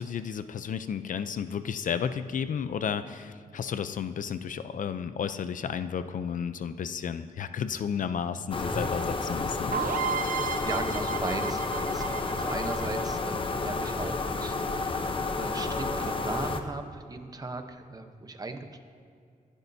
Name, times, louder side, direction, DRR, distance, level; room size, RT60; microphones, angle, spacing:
voice 1, 0.0-9.8, left 7 dB, 65° left, 11 dB, 0.5 m, -32 dB
sound 1, 8.3-9.5, equal, ahead, 0.4 m, -39 dB
sound 2, 8.5-16.6, left 3 dB, 35° left, 0.8 m, -31 dB
sound 3, 9.7-13.5, right 8 dB, 70° right, 0.8 m, -33 dB
voice 2, 10.3-18.8, right 3 dB, 25° right, 6 dB, 0.9 m, -38 dB
24.5 x 12.0 x 2.8 m, 2.3 s
wide cardioid pair, 140°, 15 cm